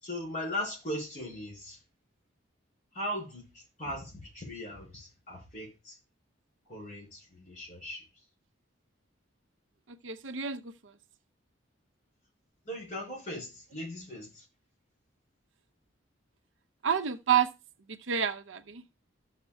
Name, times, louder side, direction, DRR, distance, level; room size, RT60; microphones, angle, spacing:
voice 1, 0.0-1.8 2.9-6.0 6.7-8.0 12.6-14.5, left 1 dB, 40° left, 5.4 m, -39 dB
voice 2, 10.0-10.6 16.8-17.5 18.1-18.8, right 8 dB, 75° right, 0.7 m, -28 dB
14.0 x 6.5 x 2.3 m
head